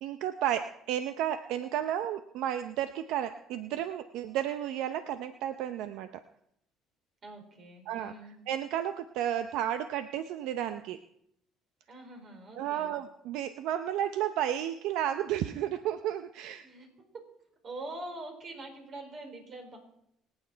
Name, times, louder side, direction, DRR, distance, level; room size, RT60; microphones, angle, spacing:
voice 1, 0.0-6.2 7.9-8.1 8.5-11.0 12.6-16.7, right 11 dB, 80° right, 10 dB, 0.6 m, -32 dB
voice 2, 7.2-8.4 11.9-12.9 16.6-16.9 17.6-19.8, right 2 dB, 45° right, 3 dB, 4.6 m, -44 dB
24.0 x 9.0 x 4.5 m, 0.75 s
cardioid pair, 100°, 0 cm